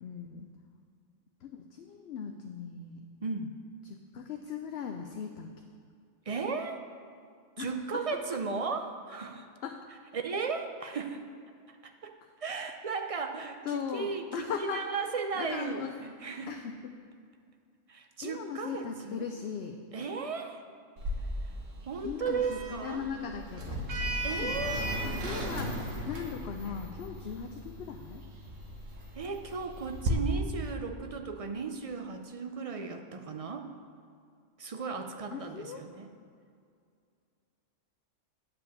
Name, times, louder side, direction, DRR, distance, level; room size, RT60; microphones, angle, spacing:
voice 1, 0.0-0.5 1.4-3.0 3.8-5.5 7.6-8.4 9.6-9.8 13.6-14.9 15.3-15.9 16.5-17.0 18.2-19.8 22.0-23.8 24.4-24.6 24.9-28.2 35.3-35.8, left 7 dB, 65° left, 4 dB, 0.8 m, -39 dB
voice 2, 3.2-3.6 6.3-6.8 7.6-9.5 10.1-11.2 11.7-16.5 17.9-19.3 19.9-20.6 21.9-23.0 24.2-24.9 29.1-33.7 34.6-36.1, right 5 dB, 45° right, 5 dB, 0.4 m, -36 dB
Sliding door, 21.0-30.1, right 1 dB, 85° right, 1.5 m, -36 dB
9.7 x 5.0 x 7.0 m, 2.3 s
omnidirectional pair, 1.3 m